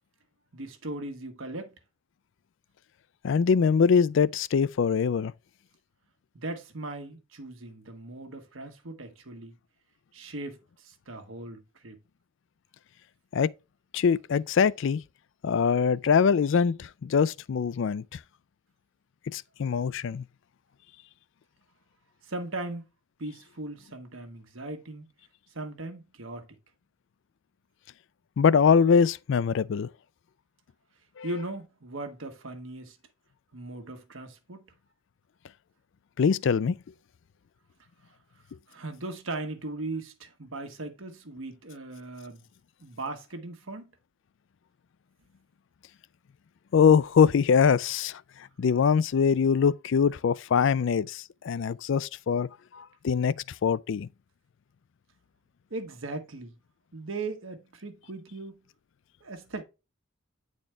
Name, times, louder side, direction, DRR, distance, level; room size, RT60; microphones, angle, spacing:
voice 1, 0.5-1.8 6.3-9.5 10.1-12.0 22.2-22.9 23.2-25.1 25.5-26.5 31.2-33.0 33.5-34.7 38.7-42.5 42.8-43.9 55.7-56.5 56.9-58.6 59.2-59.6, right 2 dB, 80° right, 1.3 m, -38 dB
voice 2, 3.2-5.3 13.3-13.5 13.9-15.0 15.4-18.0 19.3-20.2 28.4-29.9 31.2-31.3 36.2-36.8 46.7-48.2 48.6-52.5 52.8-53.3 53.6-54.1, left 6 dB, 65° left, 0.4 m, -23 dB
8.8 x 4.3 x 3.3 m
head